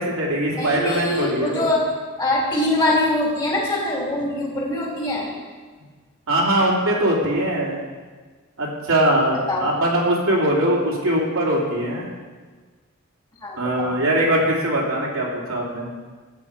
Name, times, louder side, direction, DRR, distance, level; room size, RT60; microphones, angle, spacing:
voice 1, 0.0-1.7 6.3-7.8 8.6-12.1 13.6-15.9, right 1 dB, 80° right, -3 dB, 2.8 m, -21 dB
voice 2, 0.5-1.9 2.2-5.3 9.5-9.7 13.4-13.9, left 1 dB, 20° left, -3 dB, 3.2 m, -23 dB
13.5 x 8.8 x 4.8 m, 1.4 s
head